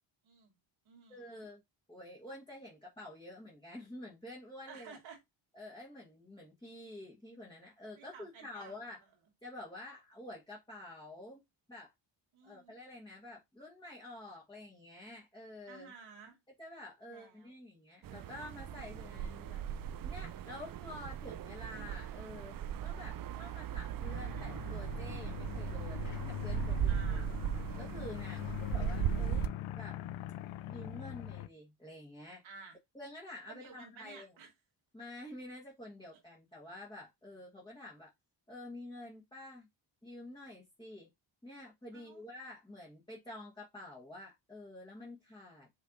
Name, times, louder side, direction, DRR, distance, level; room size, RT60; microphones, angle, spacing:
voice 1, 0.2-0.5 0.9-1.5 4.7-5.2 7.9-8.8 12.3-12.7 15.7-16.4 17.1-17.5 26.9-27.3 28.3-28.6 32.4-32.8 33.5-34.5 36.1-36.2 41.9-42.2, right 5 dB, 80° right, 2.1 m, -53 dB
voice 2, 1.1-1.6 1.9-5.0 5.5-9.0 9.4-11.4 11.7-11.9 12.4-15.9 16.6-19.6 20.0-27.3 27.8-29.5 29.7-30.0 30.7-32.4 32.9-34.3 34.9-38.1 38.5-39.7 40.0-41.1 41.4-45.7, left 1 dB, 10° left, 1.4 m, -49 dB
sound 1, 18.0-29.5, right 10 dB, 50° right, 0.5 m, -38 dB
sound 2, 24.0-31.5, left 15 dB, 85° left, 0.5 m, -42 dB
5.6 x 3.3 x 2.6 m
cardioid pair, 75°, 47 cm